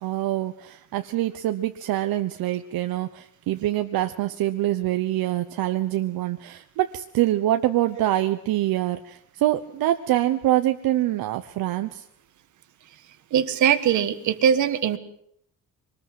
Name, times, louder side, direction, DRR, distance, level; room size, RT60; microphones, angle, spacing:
voice 1, 0.0-12.0, right 14 dB, 70° right, 7 dB, 1.0 m, -25 dB
voice 2, 13.3-15.0, right 9 dB, 50° right, 11 dB, 1.6 m, -21 dB
23.5 x 20.0 x 7.8 m, 0.69 s
cardioid pair, 180°, 37 cm